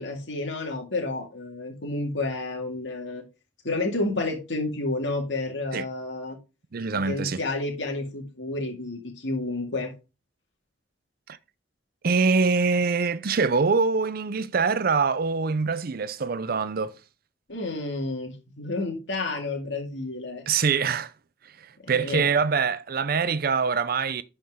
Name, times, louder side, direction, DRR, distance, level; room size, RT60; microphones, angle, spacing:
voice 1, 0.0-3.2 3.6-6.4 6.9-9.9 17.5-20.4 21.8-22.3, left 2 dB, 85° left, 2.1 m, -30 dB
voice 2, 6.7-7.4 12.0-17.0 20.5-21.1 21.6-24.2, right 5 dB, 55° right, 0.6 m, -24 dB
11.0 x 4.5 x 3.7 m
head